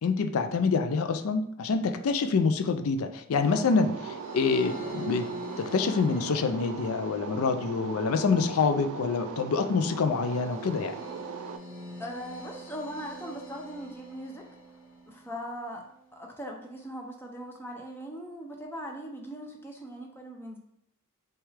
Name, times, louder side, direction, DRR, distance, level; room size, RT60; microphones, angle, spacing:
voice 1, 0.0-5.3 5.6-11.0, left 4 dB, 70° left, 8 dB, 0.4 m, -26 dB
sound 1, 3.4-11.6, right 5 dB, 70° right, 0.3 m, -40 dB
sound 2, 4.1-15.4, right 1 dB, 40° left, 0.9 m, -45 dB
voice 2, 12.0-14.5 15.1-15.8 16.1-20.6, equal, 10° left, 0 dB, 0.5 m, -40 dB
6.1 x 2.3 x 3.2 m, 0.73 s
head